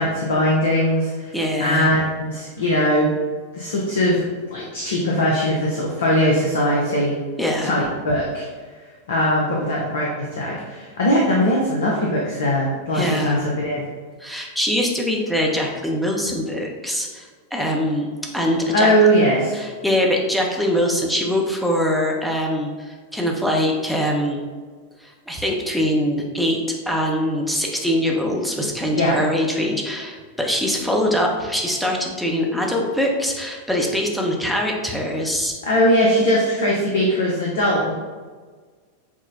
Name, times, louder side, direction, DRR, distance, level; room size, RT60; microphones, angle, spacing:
voice 1, 0.0-1.3 1.6-3.1 3.5-4.2 4.5-7.1 7.6-8.5 9.1-13.9 18.7-19.6 28.9-29.2 35.6-37.9, equal, 65° left, -3 dB, 0.6 m, -20 dB
voice 2, 1.3-1.9 7.4-7.7 12.9-13.4 14.2-18.1 18.3-18.9 19.5-24.4 25.0-26.6 26.9-35.5, equal, ahead, -1 dB, 0.6 m, -23 dB
5.9 x 2.1 x 2.6 m, 1.5 s
figure-of-eight pair, 90°, 0 cm